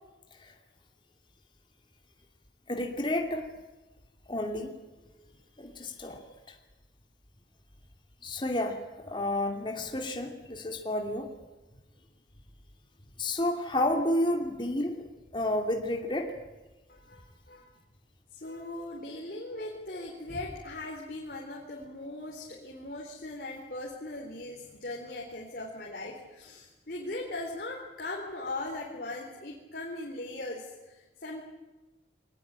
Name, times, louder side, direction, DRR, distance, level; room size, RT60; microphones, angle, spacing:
voice 1, 2.7-3.5 4.3-4.7 5.6-6.2 6.5-6.6 8.2-11.3 13.2-15.1 15.3-16.3, left 1 dB, 25° left, 3 dB, 2.7 m, -30 dB
voice 2, 16.9-17.7 18.3-31.5, left 2 dB, 55° left, -2 dB, 3.9 m, -39 dB
23.0 x 20.0 x 8.9 m, 1.1 s
head